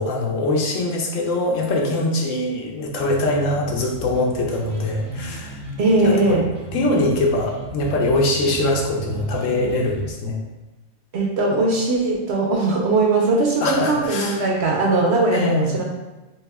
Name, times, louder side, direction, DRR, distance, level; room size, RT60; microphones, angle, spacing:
voice 1, 0.0-5.6 6.0-6.4 6.7-10.4 13.6-14.4 15.3-15.8, left 2 dB, 70° left, 0 dB, 1.0 m, -22 dB
sound 1, 3.1-10.1, right 2 dB, 85° right, 1.1 m, -34 dB
voice 2, 5.8-6.4 11.1-15.8, right 3 dB, 60° right, -1 dB, 0.8 m, -20 dB
3.4 x 2.9 x 3.4 m, 1.1 s
omnidirectional pair, 1.4 m